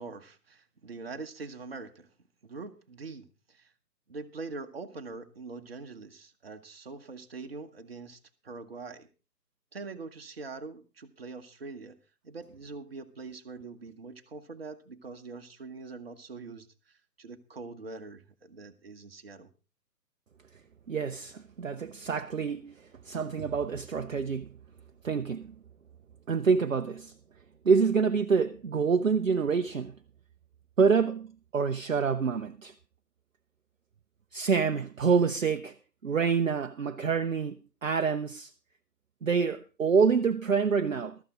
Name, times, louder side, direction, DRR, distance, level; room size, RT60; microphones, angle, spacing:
voice 1, 0.0-2.1 2.4-3.7 4.1-9.1 9.7-12.0 12.2-19.5, right 3 dB, 35° right, 1.1 m, -43 dB
voice 2, 20.9-24.5 25.0-25.5 26.3-27.1 27.6-30.0 30.8-31.3 31.5-32.7 34.3-35.7 36.0-37.6 37.8-38.5 39.2-41.2, right 5 dB, 55° right, 0.7 m, -27 dB
14.0 x 13.0 x 3.7 m
figure-of-eight pair, 150°, 49 cm